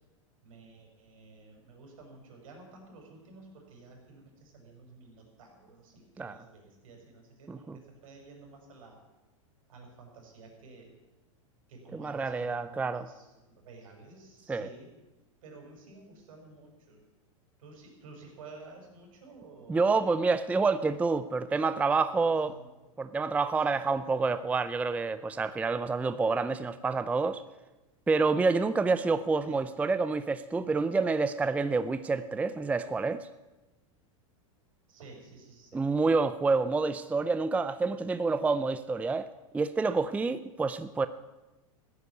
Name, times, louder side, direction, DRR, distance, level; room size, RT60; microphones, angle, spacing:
voice 1, 0.4-9.0 9.7-10.9 11.7-14.9 15.4-17.0 17.6-20.2 21.5-22.7 23.7-24.1 29.4-29.6 34.9-35.8, right 3 dB, 75° right, 1 dB, 5.8 m, -52 dB
voice 2, 11.9-13.1 14.5-14.7 19.7-22.5 23.0-27.4 28.1-33.3 35.7-39.3 39.5-41.1, right 4 dB, 10° right, 13 dB, 0.5 m, -28 dB
14.5 x 9.7 x 8.2 m, 1.1 s
hypercardioid pair, 120°, 17 cm